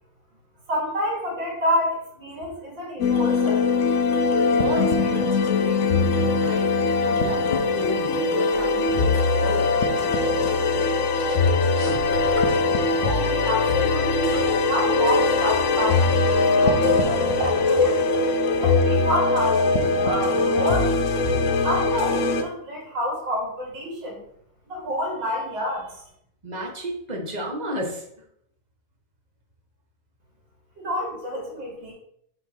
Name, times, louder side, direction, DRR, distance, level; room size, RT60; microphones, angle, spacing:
voice 1, 0.7-3.6 13.0-18.0 18.6-21.0 21.6-24.2 24.7-26.0 30.8-31.9, equal, 70° right, -2 dB, 3.0 m, -28 dB
sound 1, 3.0-22.4, left 3 dB, 70° left, 0.7 m, -21 dB
voice 2, 4.5-6.7 7.0-9.8 26.4-28.1, equal, 25° right, 1 dB, 1.1 m, -32 dB
sound 2, 8.5-19.6, right 3 dB, 55° right, 2.6 m, -40 dB
5.6 x 4.1 x 6.0 m, 0.72 s
omnidirectional pair, 2.0 m